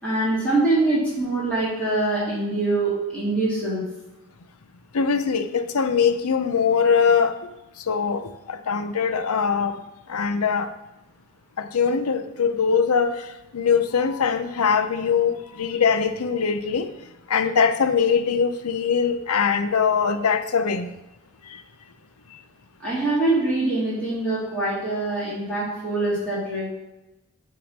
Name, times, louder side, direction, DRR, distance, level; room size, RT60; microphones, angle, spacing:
voice 1, 0.0-3.8 22.8-26.7, right 2 dB, 5° left, -9 dB, 2.7 m, -24 dB
voice 2, 4.9-7.5 7.8-9.8 10.1-10.7 11.6-16.9 17.3-20.9 21.4-21.6, left 6 dB, 85° left, 10 dB, 0.6 m, -22 dB
8.7 x 3.8 x 6.3 m, 0.97 s
head